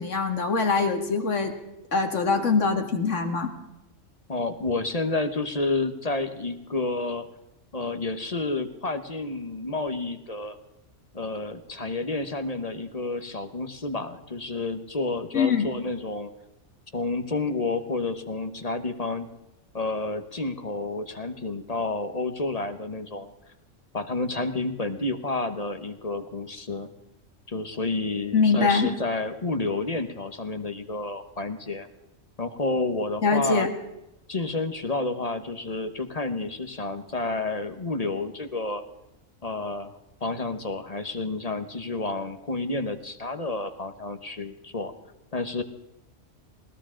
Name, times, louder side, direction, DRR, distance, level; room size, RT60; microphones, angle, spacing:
voice 1, 0.0-1.5 1.9-3.5 15.3-15.7 28.3-28.9 33.2-33.7, left 4 dB, 70° left, 4 dB, 2.2 m, -23 dB
voice 2, 4.3-7.3 7.7-10.6 11.1-16.3 16.9-19.3 19.7-23.3 23.9-26.9 27.5-31.9 32.4-33.7 34.3-38.8 39.4-44.9 45.3-45.6, left 2 dB, 35° left, 9 dB, 1.1 m, -30 dB
20.5 x 17.5 x 3.8 m, 0.93 s
omnidirectional pair, 1.3 m